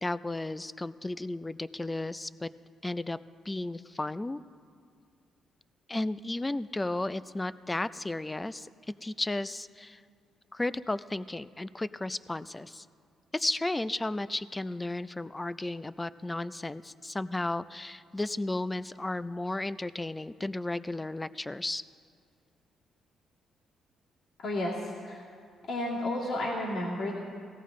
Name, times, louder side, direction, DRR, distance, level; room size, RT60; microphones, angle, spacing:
voice 1, 0.0-2.5 2.8-3.2 3.5-4.4 5.9-8.7 9.0-10.0 10.5-12.9 13.3-21.8, left 2 dB, 15° left, 15 dB, 0.4 m, -34 dB
voice 2, 24.4-25.2 25.7-27.2, left 1 dB, 70° left, -6 dB, 2.3 m, -32 dB
17.5 x 14.0 x 3.7 m, 2.3 s
cardioid pair, 90°, 0 cm